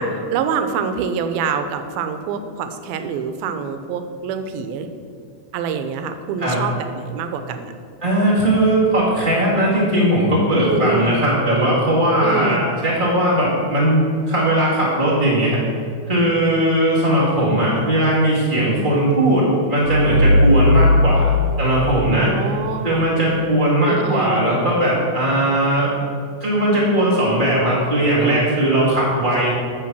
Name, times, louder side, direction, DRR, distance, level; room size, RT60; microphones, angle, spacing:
voice 1, 0.0-4.9 5.5-7.7 10.6-11.2 12.2-12.6 22.2-23.1 23.9-24.4, right 5 dB, 85° right, 8 dB, 2.4 m, -25 dB
voice 2, 8.0-15.6 16.1-21.3 21.6-22.3 22.8-25.9 26.4-29.5, right 1 dB, 25° right, -7 dB, 1.0 m, -18 dB
sound 1, 19.8-22.7, left 2 dB, 45° right, 3.4 m, -17 dB
8.6 x 5.5 x 6.0 m, 2.3 s
omnidirectional pair, 4.3 m